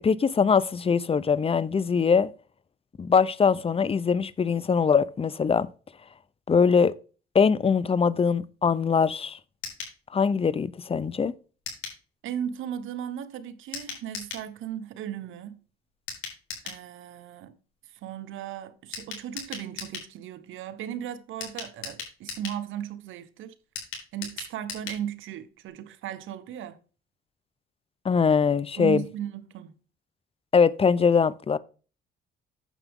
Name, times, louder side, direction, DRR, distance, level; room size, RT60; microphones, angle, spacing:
voice 1, 0.0-2.3 3.0-5.7 6.5-6.9 7.3-9.4 10.1-11.3 28.0-29.0 30.5-31.6, left 6 dB, 30° left, 0.7 m, -22 dB
sound 1, 9.6-10.0 11.7-12.0 13.7-14.5 16.1-16.8 18.9-20.1 21.4-22.6 23.8-25.0 25.3-25.4 25.7-25.8, left 6 dB, 85° left, 4.0 m, -38 dB
voice 2, 12.2-15.6 16.6-17.5 18.0-23.5 24.1-26.8 28.8-29.7, right 10 dB, 85° right, 1.0 m, -36 dB
9.2 x 7.1 x 3.6 m
cardioid pair, 90°, 20 cm